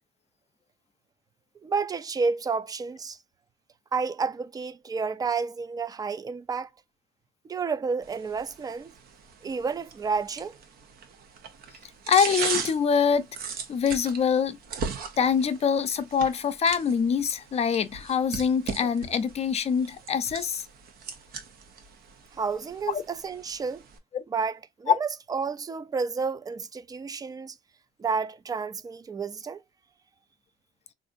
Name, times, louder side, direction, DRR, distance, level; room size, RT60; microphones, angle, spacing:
voice 1, 1.6-3.2 3.9-6.7 7.4-8.9 9.4-10.6 22.3-23.8 24.3-27.6 28.0-29.6, right 5 dB, 20° right, 0.3 m, -30 dB
sound 1, 8.0-24.0, right 6 dB, 60° right, 0.8 m, -39 dB
voice 2, 12.1-13.3 13.7-14.6 15.2-20.6 22.9-23.0 24.9-25.0, left 7 dB, 40° left, 0.5 m, -24 dB
3.6 x 2.5 x 2.5 m
cardioid pair, 110°, 17 cm